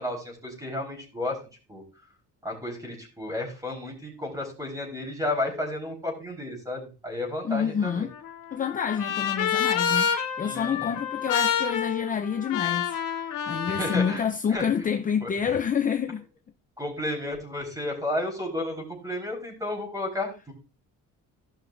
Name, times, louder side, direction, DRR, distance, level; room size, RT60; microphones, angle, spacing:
voice 1, 0.0-1.4 1.7-1.8 2.4-8.0 10.4-10.9 13.7-14.2 14.5-14.7 15.2-15.6 16.8-20.5, left 1 dB, 10° right, 4.2 m, -32 dB
voice 2, 7.4-8.1 8.5-16.2, left 7 dB, 25° left, 0.5 m, -28 dB
Trumpet, 7.8-14.2, left 8 dB, 75° left, 2.5 m, -28 dB
16.0 x 5.8 x 2.5 m
cardioid pair, 130°, 32 cm